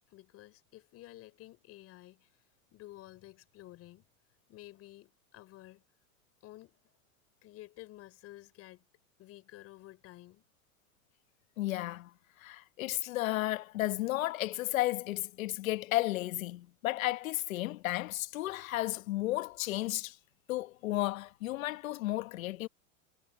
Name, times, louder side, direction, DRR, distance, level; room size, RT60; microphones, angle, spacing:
voice 1, 0.1-2.4 2.7-4.0 4.5-5.8 6.4-6.8 7.4-8.8 9.2-10.4, left 16 dB, 35° left, 5.8 m, -52 dB
voice 2, 11.6-12.1 12.4-20.2 20.5-22.7, left 17 dB, 75° left, 1.4 m, -33 dB
supercardioid pair, 150°, 41 cm